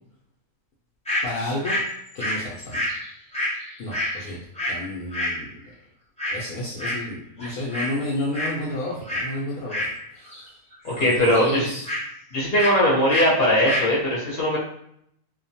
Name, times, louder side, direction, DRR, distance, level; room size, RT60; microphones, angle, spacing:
sound 1, 1.1-1.2 1.6-4.8 5.1-5.4 6.2-6.4 6.8-7.1 7.4-7.9 8.2-8.6 9.1-9.3 9.7-10.5 10.7-12.0 12.5-12.8 13.1-13.3 13.5-13.9, left 1 dB, 5° left, 0.5 m, -28 dB
voice 1, 1.2-1.8 2.1-2.8 3.8-5.5 6.3-10.5 10.9-11.9, left 1 dB, 85° left, -6 dB, 1.1 m, -31 dB
voice 2, 10.8-11.7 12.3-14.6, equal, 45° left, -6 dB, 1.0 m, -20 dB
2.8 x 2.1 x 2.7 m, 0.72 s
omnidirectional pair, 1.5 m